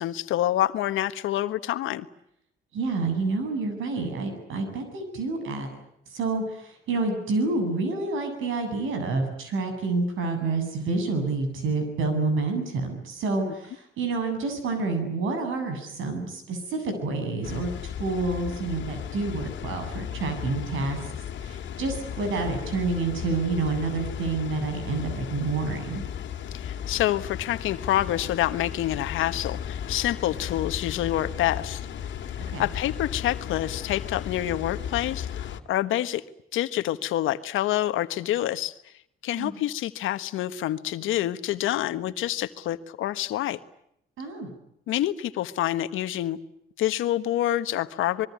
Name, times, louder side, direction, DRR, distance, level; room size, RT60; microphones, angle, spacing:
voice 1, 0.0-2.1 13.4-13.5 26.5-31.9 32.6-36.2 36.5-38.7 39.2-43.6 44.9-46.4 46.8-48.3, left 13 dB, 85° left, 11 dB, 1.4 m, -27 dB
voice 2, 2.7-5.7 6.1-17.7 18.0-21.0 21.4-26.0 32.5-32.7 39.4-39.5 44.2-44.5, right 3 dB, 80° right, 7 dB, 8.0 m, -28 dB
Water, 17.4-35.6, left 9 dB, 70° left, 2.3 m, -35 dB
25.0 x 22.5 x 9.6 m, 0.75 s
cardioid pair, 90°, 20 cm